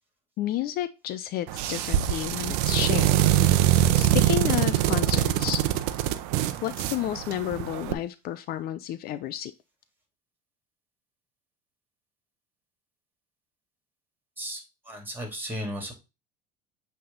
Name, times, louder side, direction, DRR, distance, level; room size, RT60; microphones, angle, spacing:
voice 1, 0.4-3.7 4.0-5.7 6.6-9.5, left 12 dB, 55° left, 14 dB, 0.5 m, -31 dB
sound 1, 1.5-7.9, right 13 dB, 70° right, 0.8 m, -23 dB
voice 2, 14.4-15.9, equal, 10° right, 3 dB, 3.3 m, -35 dB
8.4 x 3.5 x 3.8 m, 0.26 s
hypercardioid pair, 85°, 19 cm